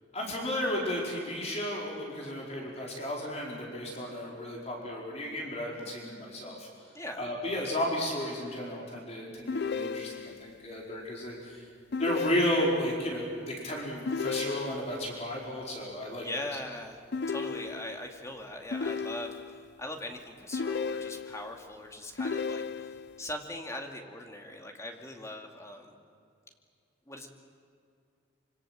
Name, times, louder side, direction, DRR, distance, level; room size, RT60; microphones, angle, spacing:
voice 1, 0.1-6.7 7.2-11.6 12.0-16.2, left 1 dB, 35° left, -3 dB, 4.8 m, -33 dB
voice 2, 6.9-7.3 16.2-17.0 17.3-25.9 27.1-27.3, left 1 dB, 15° left, 2 dB, 2.4 m, -41 dB
sound 1, 9.5-10.5 11.9-13.0 14.1-15.1 17.1-18.1 18.7-19.7 20.5-21.6 22.2-23.2, left 5 dB, 60° left, 0.6 m, -34 dB
26.0 x 25.0 x 7.8 m, 2.4 s
head